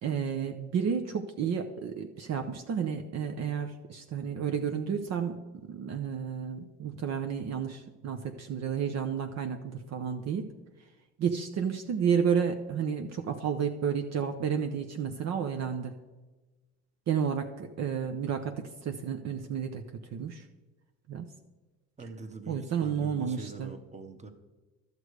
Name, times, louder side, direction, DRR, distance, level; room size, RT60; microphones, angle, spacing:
voice 1, 0.0-5.4 5.7-10.5 11.2-15.9 17.1-20.5 21.1-21.3 22.5-23.7, right 7 dB, 50° right, 6 dB, 0.8 m, -31 dB
voice 2, 22.0-24.3, right 3 dB, 20° right, 7 dB, 1.2 m, -44 dB
11.5 x 6.7 x 4.9 m, 1.2 s
supercardioid pair, 70°, 33 cm